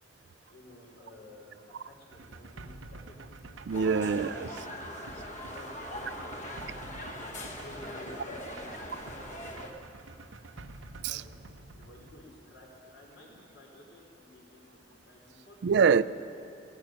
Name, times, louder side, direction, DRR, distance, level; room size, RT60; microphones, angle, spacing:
voice 1, 0.5-3.2 3.7-6.5 7.1-8.7 11.0-11.2 11.7-15.8, left 1 dB, 70° left, -3 dB, 3.8 m, -53 dB
sound 1, 2.1-12.3, right 2 dB, 85° right, 0.7 m, -48 dB
sound 2, 3.7-9.7, left 1 dB, 40° left, 1.3 m, -41 dB
voice 2, 3.7-4.5 11.0-11.2 15.6-16.0, right 6 dB, 60° right, 16 dB, 0.4 m, -24 dB
16.5 x 9.0 x 9.1 m, 2.6 s
head